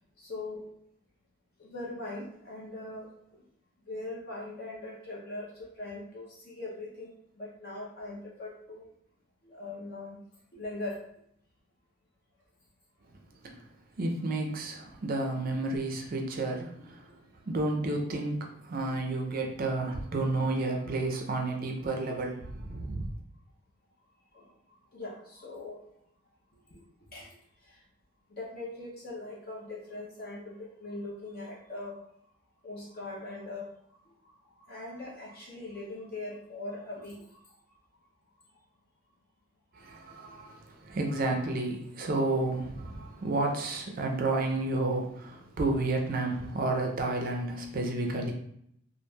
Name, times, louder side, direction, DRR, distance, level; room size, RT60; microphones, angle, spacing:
voice 1, 0.2-0.7 1.6-3.4 3.9-5.5 5.8-8.9 9.4-10.2 10.5-11.0 24.3-24.5 24.9-25.8 26.7-26.8 27.1-27.4 27.7-27.8 28.3-32.0 32.6-33.7 34.2-34.3 34.6-37.4, left 2 dB, 45° left, -4 dB, 0.5 m, -41 dB
voice 2, 14.0-17.1 17.4-23.1 39.7-48.3, right 2 dB, 40° right, 2 dB, 0.4 m, -31 dB
3.0 x 2.4 x 2.2 m, 0.71 s
head